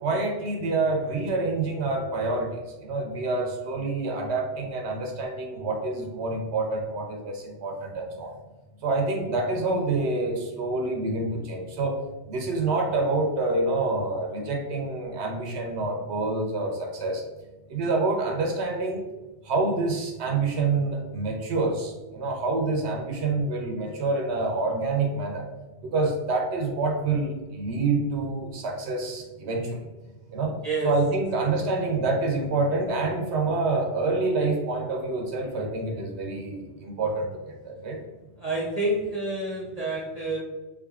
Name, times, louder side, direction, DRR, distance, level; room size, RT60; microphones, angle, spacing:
voice 1, 0.0-8.3 8.8-12.0 12.3-17.2 17.7-19.0 19.5-25.4 25.8-29.8 30.3-30.5 30.8-37.3 37.6-38.0, right 3 dB, 75° right, 2 dB, 0.9 m, -27 dB
voice 2, 30.6-30.9 38.4-40.4, right 2 dB, 40° right, -5 dB, 0.7 m, -28 dB
3.5 x 3.5 x 2.4 m, 1.2 s
omnidirectional pair, 1.2 m